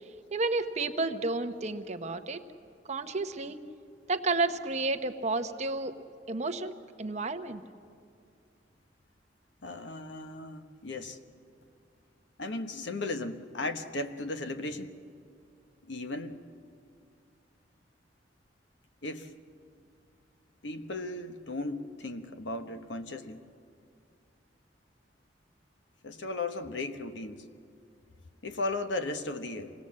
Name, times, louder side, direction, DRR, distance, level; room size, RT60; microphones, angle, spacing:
voice 1, 0.3-2.4 2.9-3.6 4.1-5.9 6.3-6.7 7.0-7.6, right 3 dB, 40° right, 8 dB, 0.9 m, -31 dB
voice 2, 9.6-11.2 12.4-14.9 15.8-16.4 19.0-19.3 20.6-23.4 26.0-27.5 28.4-29.7, left 2 dB, 75° left, 8 dB, 1.1 m, -36 dB
26.0 x 18.5 x 7.5 m, 2.3 s
head